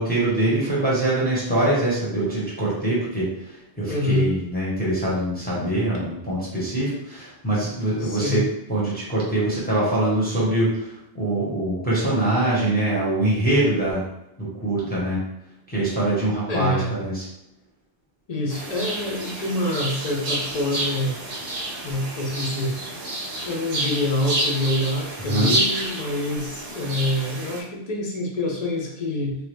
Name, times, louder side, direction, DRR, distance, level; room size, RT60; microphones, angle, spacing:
voice 1, 0.0-8.4 8.7-14.0 14.4-15.2 15.7-17.3 25.2-25.5, right 1 dB, 10° left, -7 dB, 0.9 m, -23 dB
voice 2, 3.9-4.3 8.0-8.4 16.5-17.0 18.3-21.2 21.8-22.8 23.5-29.4, left 1 dB, 45° left, -1 dB, 0.6 m, -26 dB
sound 1, 18.5-27.6, right 1 dB, 80° right, 0.9 m, -29 dB
2.9 x 2.3 x 3.3 m, 0.84 s
omnidirectional pair, 1.1 m